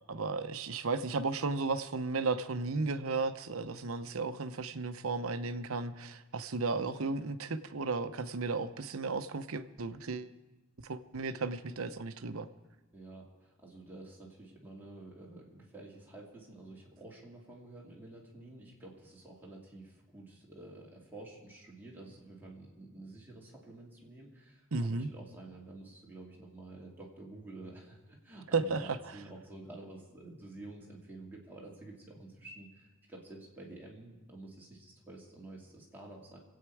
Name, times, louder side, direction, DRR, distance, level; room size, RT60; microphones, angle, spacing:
voice 1, 0.1-10.3 10.8-12.5 24.7-25.1 28.5-29.1, right 3 dB, 75° right, 11 dB, 0.8 m, -34 dB
voice 2, 12.9-36.4, right 2 dB, 10° right, -4 dB, 2.8 m, -50 dB
26.5 x 8.9 x 4.7 m, 1.1 s
head